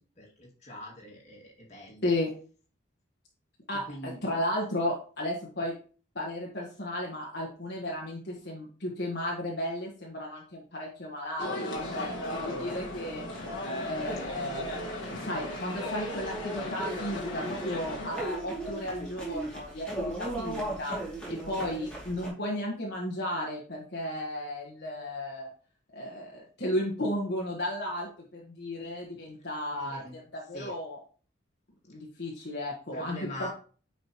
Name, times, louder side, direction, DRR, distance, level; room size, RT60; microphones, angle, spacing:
voice 1, 0.2-2.2 3.9-4.2 29.8-30.2 30.5-30.7 32.9-33.5, left 1 dB, 35° left, -3 dB, 2.2 m, -43 dB
voice 2, 3.7-5.7 6.1-13.2 13.8-21.0 21.3-25.5 25.9-31.0 31.9-33.5, left 1 dB, 55° left, -2 dB, 1.5 m, -34 dB
sound 1, 11.4-18.2, left 1 dB, 70° left, 1.7 m, -37 dB
sound 2, 11.7-22.3, right 1 dB, 5° left, 2.6 m, -38 dB
9.4 x 5.0 x 3.0 m, 0.41 s
head